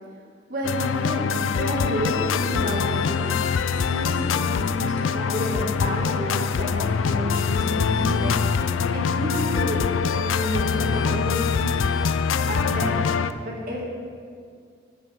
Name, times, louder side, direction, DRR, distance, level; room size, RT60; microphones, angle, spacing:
voice 1, 0.5-3.4 3.8-8.5 8.9-9.8 10.1-11.8 12.2-13.0 13.4-13.8, equal, 45° right, -3 dB, 2.3 m, -30 dB
sound 1, 0.6-13.3, left 6 dB, 85° left, 0.4 m, -24 dB
13.5 x 9.2 x 3.7 m, 2.2 s
head